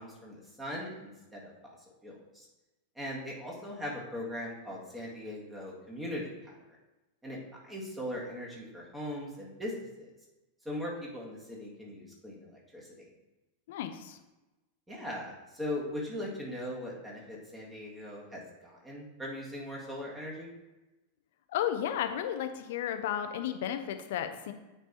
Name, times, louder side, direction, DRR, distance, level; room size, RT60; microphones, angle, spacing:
voice 1, 0.0-1.5 2.0-2.5 3.0-6.5 7.2-10.1 10.6-13.1 14.9-20.5, left 1 dB, 10° right, -4 dB, 1.7 m, -40 dB
voice 2, 13.7-14.2 21.5-24.5, left 10 dB, 55° left, 8 dB, 0.5 m, -33 dB
8.7 x 3.4 x 4.1 m, 1.1 s
figure-of-eight pair, 90°, 0 cm